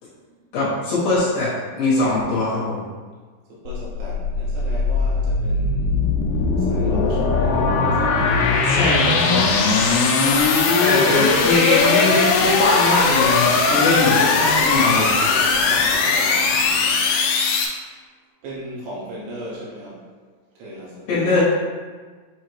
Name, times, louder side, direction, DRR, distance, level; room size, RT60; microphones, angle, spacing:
voice 1, 0.5-2.8 8.6-9.5 10.8-15.1 21.1-21.4, left 2 dB, 60° left, -9 dB, 2.8 m, -21 dB
voice 2, 3.5-6.0 6.6-8.5 10.6-11.1 15.5-17.1 18.4-20.1 20.6-21.1, right 1 dB, 75° right, -6 dB, 2.8 m, -37 dB
sound 1, 3.7-17.7, left 4 dB, 85° left, 2.4 m, -19 dB
7.5 x 2.8 x 4.4 m, 1.4 s
omnidirectional pair, 5.4 m